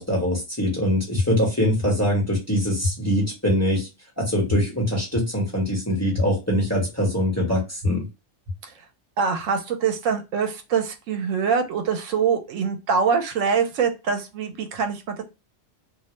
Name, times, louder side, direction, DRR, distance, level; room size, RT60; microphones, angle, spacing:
voice 1, 0.0-3.9 4.2-8.1, equal, 15° left, -3 dB, 0.9 m, -23 dB
sound 1, 1.1-1.2 1.8-1.9 2.8-2.9 3.5-3.6 4.5-4.6 5.1-5.2 6.1-6.2 6.8-6.9 7.8-7.9 8.5-8.6, left 3 dB, 25° right, 1.1 m, -24 dB
voice 2, 9.2-15.2, right 6 dB, 80° right, 5 dB, 1.0 m, -24 dB
2.5 x 2.0 x 3.1 m, 0.27 s
omnidirectional pair, 1.3 m